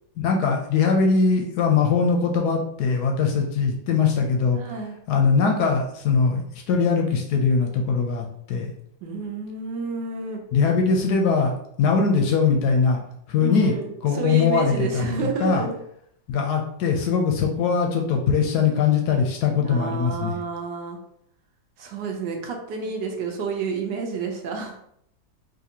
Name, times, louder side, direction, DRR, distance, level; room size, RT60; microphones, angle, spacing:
voice 1, 0.2-4.6 5.1-6.4 6.7-8.7 10.5-11.5 11.8-13.0 13.3-13.7 14.0-15.1 15.4-15.6 16.3-20.3, left 5 dB, 70° left, 2 dB, 1.0 m, -21 dB
voice 2, 4.5-5.0 9.0-10.4 13.4-15.8 19.6-21.0 21.8-24.8, right 4 dB, 75° right, 2 dB, 1.3 m, -30 dB
4.1 x 2.6 x 2.8 m, 0.72 s
omnidirectional pair, 2.1 m